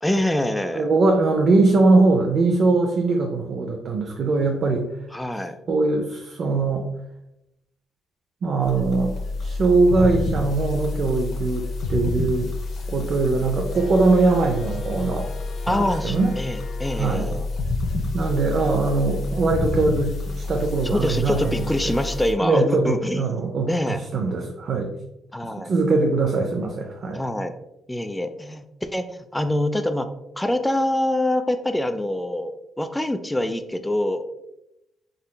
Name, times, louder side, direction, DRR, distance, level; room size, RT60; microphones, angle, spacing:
voice 1, 0.0-0.9 5.1-5.6 15.7-17.5 20.8-24.0 25.3-25.7 27.1-27.5 27.9-30.1 30.4-34.3, left 1 dB, 10° left, 9 dB, 0.3 m, -25 dB
voice 2, 0.7-4.9 5.7-6.9 8.4-9.1 9.4-12.5 12.9-15.3 15.7-16.3 17.0-17.4 18.1-21.9 22.4-24.9 25.6-27.2, right 3 dB, 55° right, 2 dB, 0.4 m, -21 dB
sound 1, 8.6-22.3, left 3 dB, 65° left, 0.6 m, -29 dB
3.8 x 3.1 x 2.2 m, 0.87 s
cardioid pair, 90°, 0 cm